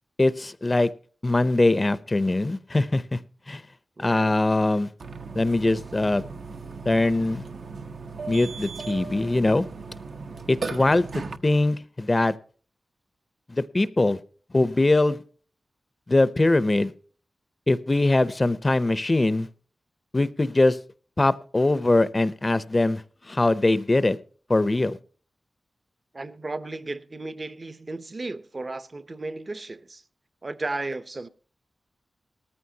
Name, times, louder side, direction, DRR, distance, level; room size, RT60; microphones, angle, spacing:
voice 1, 0.2-0.9 1.2-3.2 3.5-3.6 4.0-4.9 5.3-6.2 6.9-7.4 8.3-9.6 10.5-12.3 13.5-14.2 14.5-15.2 16.1-16.9 17.7-19.5 20.1-20.8 21.2-23.0 23.3-24.2 24.5-25.0, left 2 dB, 30° left, 0.6 m, -22 dB
voice 2, 4.0-4.4 10.8-11.0 26.1-30.0 30.4-31.3, right 2 dB, 40° right, 0.7 m, -35 dB
Burping eructation, 5.0-11.4, right 4 dB, 80° right, 1.0 m, -37 dB
18.5 x 14.0 x 2.8 m
wide cardioid pair, 95°, 0 cm